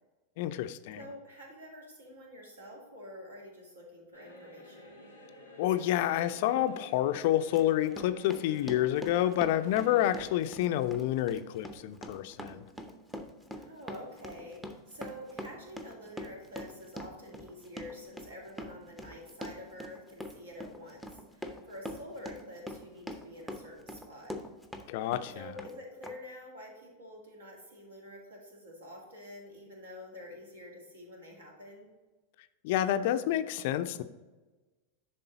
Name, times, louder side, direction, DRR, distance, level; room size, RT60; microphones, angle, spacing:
voice 1, 0.4-1.0 5.6-12.7 24.9-25.5 32.6-34.0, left 12 dB, 50° left, 11 dB, 0.4 m, -29 dB
voice 2, 1.0-5.0 13.5-24.4 25.3-31.9, left 1 dB, 70° right, -1 dB, 2.1 m, -48 dB
sound 1, 4.1-10.4, left 1 dB, 90° right, 2.1 m, -52 dB
Run, 6.6-6.7 7.1-24.9 25.1-25.7 26.0-26.1, equal, 5° right, 0.7 m, -43 dB
10.5 x 3.8 x 3.9 m, 1.2 s
figure-of-eight pair, 90°, 0 cm